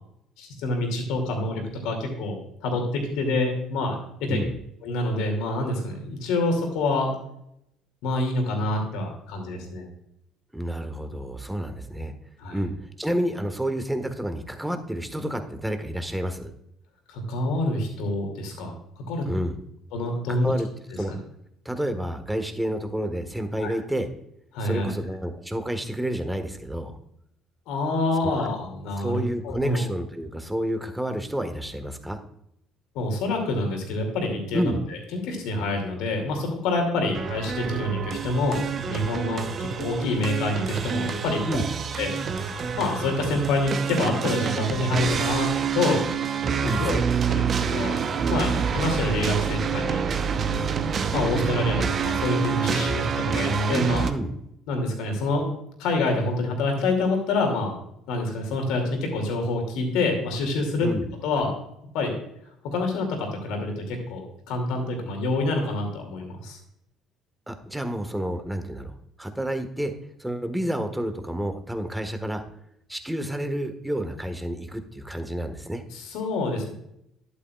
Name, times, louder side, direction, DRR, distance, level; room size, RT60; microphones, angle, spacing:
voice 1, 0.4-3.9 4.2-4.4 4.8-7.1 8.0-9.9 12.4-12.6 17.1-18.8 19.1-19.3 19.9-20.5 23.6-23.7 24.5-24.9 27.7-29.8 32.9-34.7 35.2-38.6 38.9-41.4 42.0-42.1 42.7-46.0 46.6-47.0 47.3-48.0 48.3-50.0 51.1-54.1 54.7-55.5 55.8-57.7 58.1-60.9 61.2-61.5 61.9-62.1 62.6-66.6 75.9-76.7, left 2 dB, 70° left, 2 dB, 2.5 m, -26 dB
voice 2, 10.5-12.1 12.5-16.5 19.3-19.6 20.3-20.7 21.0-21.1 21.6-24.1 24.6-26.9 28.4-28.5 29.0-32.2 34.5-34.8 41.5-41.7 45.9-46.0 46.7-47.0 54.0-54.3 60.8-61.1 67.5-72.4 72.9-75.8, right 1 dB, 5° right, 7 dB, 1.4 m, -30 dB
sound 1, 37.1-54.1, right 6 dB, 45° right, 0.9 m, -27 dB
11.5 x 8.3 x 2.4 m, 0.76 s
hypercardioid pair, 55°, 0 cm